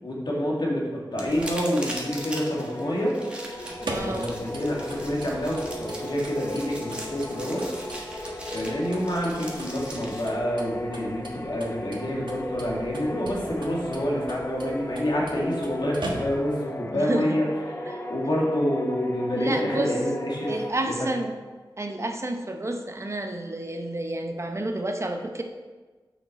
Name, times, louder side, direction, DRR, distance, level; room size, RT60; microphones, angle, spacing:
voice 1, 0.0-3.1 4.0-7.7 8.5-20.6 20.8-21.1, equal, 65° left, -3 dB, 1.9 m, -28 dB
sound 1, 1.1-10.2, right 1 dB, 15° right, 1.4 m, -40 dB
sound 2, 1.2-20.7, left 1 dB, 25° left, 0.6 m, -37 dB
sound 3, 3.5-16.6, right 1 dB, 70° right, 1.2 m, -41 dB
voice 2, 3.8-4.3 16.9-17.4 17.9-18.0 19.4-19.9 20.5-21.3 21.8-25.4, right 1 dB, 35° right, 4 dB, 0.7 m, -30 dB
6.8 x 6.1 x 4.1 m, 1.3 s
wide cardioid pair, 70°, 8 cm